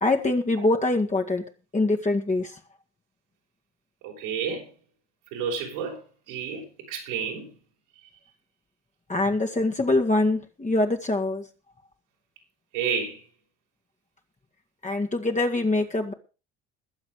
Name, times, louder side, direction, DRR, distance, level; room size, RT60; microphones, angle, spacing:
voice 1, 0.0-1.4 1.7-2.6 9.1-11.4 14.8-16.1, left 2 dB, 20° left, 2.1 m, -24 dB
voice 2, 4.0-4.7 5.3-7.5 8.0-8.1 12.7-13.3, right 6 dB, 80° right, 5.8 m, -31 dB
21.5 x 7.4 x 4.9 m
hypercardioid pair, 60°, 34 cm